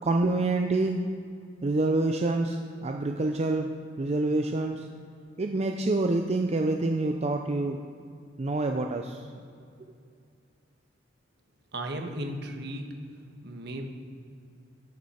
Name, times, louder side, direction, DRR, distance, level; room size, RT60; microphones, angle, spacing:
voice 1, 0.0-1.0 1.6-3.7 4.0-4.8 5.4-7.8 8.4-9.2, right 2 dB, 35° right, 4 dB, 0.5 m, -27 dB
voice 2, 11.7-12.9 13.4-13.9, right 1 dB, 65° right, 4 dB, 1.3 m, -35 dB
12.0 x 9.2 x 4.3 m, 2.4 s
head